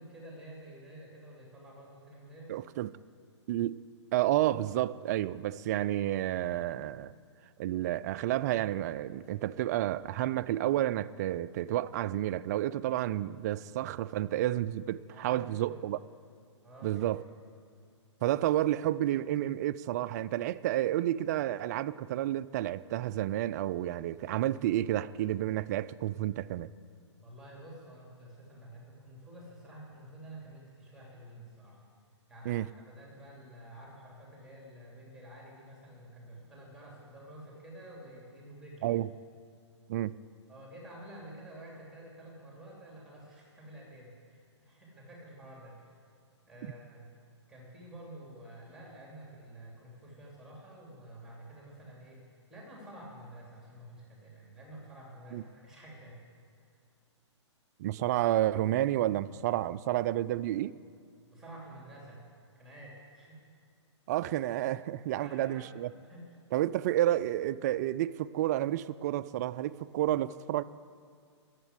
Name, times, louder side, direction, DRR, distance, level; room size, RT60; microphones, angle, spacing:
voice 1, 0.0-2.5 15.1-15.8 16.6-17.1 27.2-31.8 32.3-38.9 40.5-45.9 46.5-47.1 47.5-52.2 52.5-56.2 61.3-62.2 62.5-63.4 65.1-65.7 66.0-66.4, right 1 dB, 5° right, 3.0 m, -50 dB
voice 2, 2.5-2.9 3.5-3.8 4.1-7.1 7.6-16.0 16.8-17.2 18.2-26.7 32.5-32.7 38.8-39.1 39.9-40.1 55.3-55.4 57.8-60.7 64.1-65.9 66.5-70.6, right 13 dB, 35° right, 0.3 m, -30 dB
11.0 x 8.1 x 9.6 m
hypercardioid pair, 135°, 15 cm